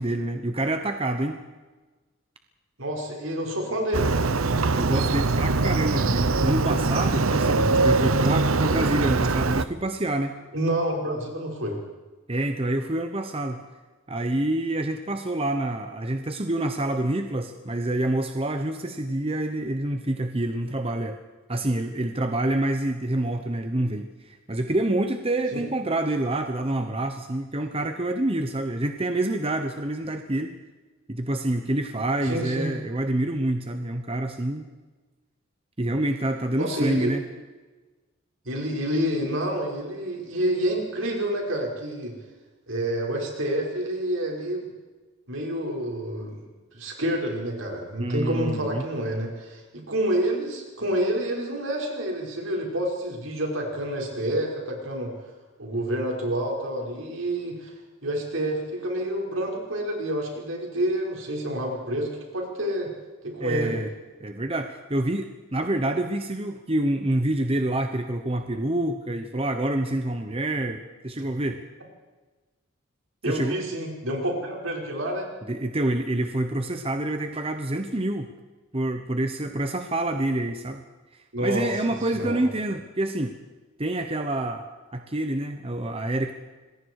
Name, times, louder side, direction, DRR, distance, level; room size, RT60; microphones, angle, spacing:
voice 1, 0.0-1.4 4.7-10.4 12.3-13.6 14.1-21.2 21.5-30.5 31.1-34.6 35.8-37.2 48.0-48.8 63.4-63.9 64.2-71.6 73.3-73.6 75.5-78.3 78.7-80.8 81.4-83.3 83.8-84.6 84.9-86.3, right 1 dB, 30° right, 6 dB, 1.1 m, -27 dB
voice 2, 2.8-4.3 7.4-7.7 10.5-11.8 25.5-25.6 32.2-32.7 36.5-37.1 38.4-42.1 42.7-44.7 45.3-46.4 46.7-55.1 55.6-57.7 58.0-62.9 63.2-63.8 71.2-71.3 73.2-75.3 81.3-81.6 82.0-82.4, right 1 dB, 70° right, 0 dB, 5.8 m, -28 dB
Motorcycle, 3.9-9.7, right 3 dB, 85° right, 0.9 m, -22 dB
27.0 x 21.0 x 4.9 m, 1.3 s
head